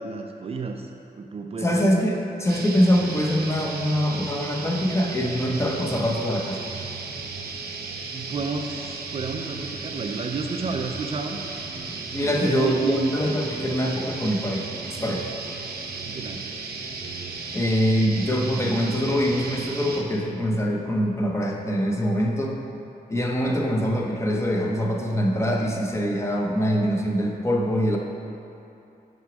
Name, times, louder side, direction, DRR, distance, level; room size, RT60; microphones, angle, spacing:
voice 1, 0.0-1.9 8.1-11.4 12.2-13.1 16.1-16.4, right 4 dB, 40° right, 3 dB, 0.4 m, -31 dB
voice 2, 1.6-6.6 11.8-15.3 17.5-22.6 23.1-28.0, equal, 15° left, -1 dB, 0.7 m, -24 dB
sound 1, 2.5-20.0, right 4 dB, 80° right, 0.8 m, -35 dB
6.2 x 4.9 x 6.1 m, 2.8 s
wide cardioid pair, 150°, 16 cm